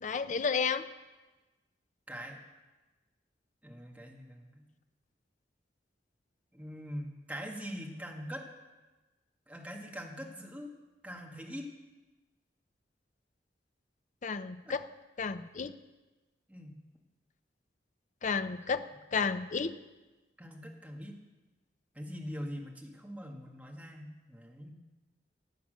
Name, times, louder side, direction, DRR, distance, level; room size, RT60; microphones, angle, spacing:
voice 1, 0.0-0.8 14.2-14.9 15.2-15.7 18.2-18.9 19.1-19.7, left 5 dB, 45° left, 11 dB, 0.6 m, -32 dB
voice 2, 2.1-2.4 3.6-4.7 6.5-8.5 9.5-10.7 11.0-11.7 14.6-14.8 16.5-16.8 20.4-21.2 21.9-24.7, equal, 10° right, 0 dB, 1.8 m, -43 dB
16.5 x 8.8 x 6.4 m, 1.2 s
head